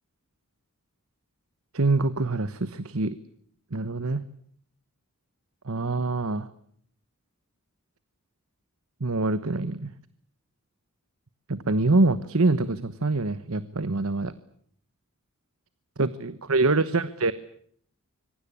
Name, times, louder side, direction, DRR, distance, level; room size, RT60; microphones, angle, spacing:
voice 1, 1.7-3.2 3.7-4.2 5.6-6.5 9.0-9.9 11.5-14.3 16.0-17.3, right 2 dB, 70° right, 14 dB, 1.1 m, -25 dB
25.5 x 23.5 x 8.6 m, 0.64 s
head